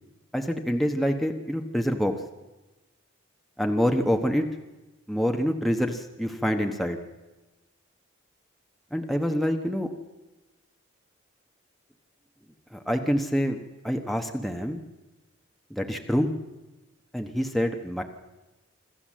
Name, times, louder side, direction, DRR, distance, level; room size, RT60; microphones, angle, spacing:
voice 1, 0.3-2.1 3.6-4.4 5.1-7.0 8.9-9.9 12.7-14.8 15.7-16.3 17.1-18.0, equal, ahead, 3 dB, 1.1 m, -26 dB
26.0 x 13.5 x 7.5 m, 1.1 s
head